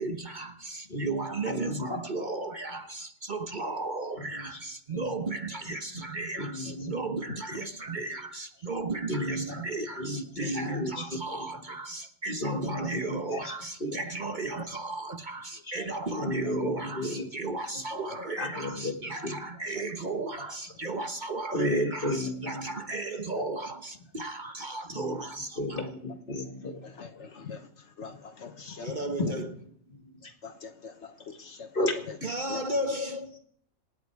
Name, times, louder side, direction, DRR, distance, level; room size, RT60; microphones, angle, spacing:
voice 1, 0.0-25.9 28.8-29.5 32.2-33.4, right 2 dB, 40° right, 1.2 m, -35 dB
voice 2, 0.9-2.0 4.2-4.6 4.9-5.1 5.9-6.0 6.4-7.0 9.1-9.7 10.0-11.5 12.4-13.5 13.8-14.0 15.7-15.8 16.2-17.3 18.4-19.4 21.5-23.0 24.9-25.2 25.6-26.8 27.2-27.3 29.2-29.4 29.9-30.3 31.7-32.0, left 1 dB, 45° left, 2.2 m, -33 dB
voice 3, 26.8-27.7 28.0-28.9 30.4-31.7 32.1-32.2 32.5-32.6, left 6 dB, 65° left, 1.2 m, -43 dB
27.5 x 9.4 x 4.7 m
omnidirectional pair, 1.3 m